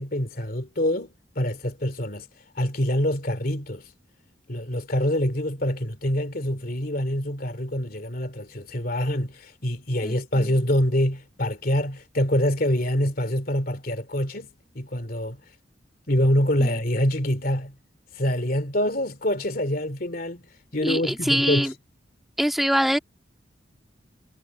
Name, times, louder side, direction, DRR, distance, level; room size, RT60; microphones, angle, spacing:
voice 1, 0.0-2.2 2.6-3.8 4.5-14.5 14.7-15.4 16.1-17.7 18.2-20.4 20.7-21.7, equal, 50° left, 2.7 m, -25 dB
voice 2, 10.0-10.6 16.6-16.7 20.8-21.7 22.4-23.0, equal, ahead, 2.0 m, -24 dB
head